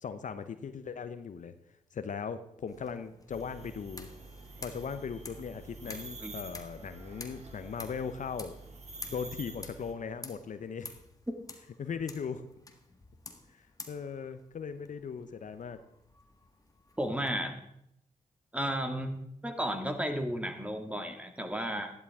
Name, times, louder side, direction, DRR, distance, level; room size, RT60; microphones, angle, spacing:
voice 1, 0.0-1.5 1.9-4.1 4.6-8.5 9.1-10.9 11.8-12.5 13.6-15.8, left 6 dB, 60° left, 11 dB, 0.8 m, -38 dB
sound 1, 2.7-17.3, left 2 dB, 25° left, 1.6 m, -51 dB
sound 2, 3.3-9.9, right 3 dB, 50° right, 2.4 m, -48 dB
voice 2, 17.0-17.5 18.5-19.2 19.4-21.9, equal, 10° right, 5 dB, 2.1 m, -33 dB
13.5 x 11.0 x 3.6 m, 0.78 s
supercardioid pair, 50°, 15 cm